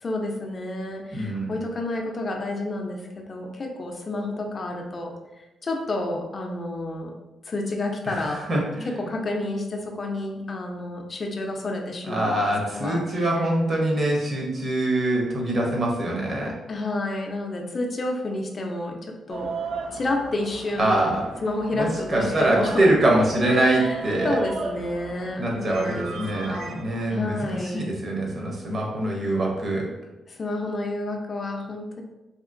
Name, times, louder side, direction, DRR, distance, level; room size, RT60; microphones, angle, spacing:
voice 1, 0.0-7.1 7.5-8.4 8.9-13.2 16.7-19.5 19.9-21.1 21.4-22.9 23.6-24.0 24.2-26.8 27.1-27.9 30.3-32.0, left 2 dB, 40° left, 2 dB, 0.5 m, -30 dB
voice 2, 1.1-1.5 8.0-9.1 12.0-16.5 20.8-21.2 21.7-24.4 25.4-29.9, right 1 dB, 45° right, -1 dB, 0.9 m, -24 dB
sound 1, 19.3-27.6, right 3 dB, 90° right, 0.4 m, -35 dB
2.9 x 2.8 x 2.5 m, 1.0 s
cardioid pair, 100°, 0 cm